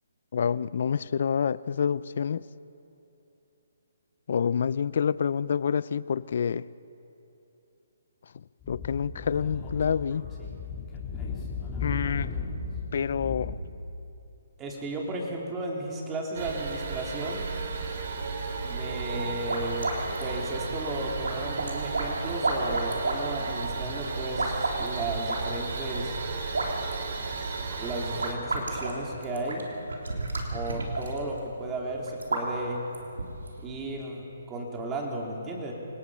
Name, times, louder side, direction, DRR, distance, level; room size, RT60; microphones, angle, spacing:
voice 1, 0.3-2.5 4.3-6.7 8.3-10.3 11.8-12.4 12.9-13.6, left 7 dB, 60° left, 0.5 m, -28 dB
Speech / Wind, 8.6-13.5, left 4 dB, 15° left, 3.8 m, -35 dB
voice 2, 14.6-17.5 18.6-19.9 20.2-26.2 27.8-29.6 30.5-32.8 33.6-35.7, right 2 dB, 15° right, 3.4 m, -34 dB
sound 1, 16.3-28.3, right 4 dB, 55° right, 2.9 m, -34 dB
sound 2, 19.2-33.6, right 2 dB, 90° right, 3.5 m, -34 dB
28.0 x 18.5 x 5.7 m
hypercardioid pair, 150°, 0 cm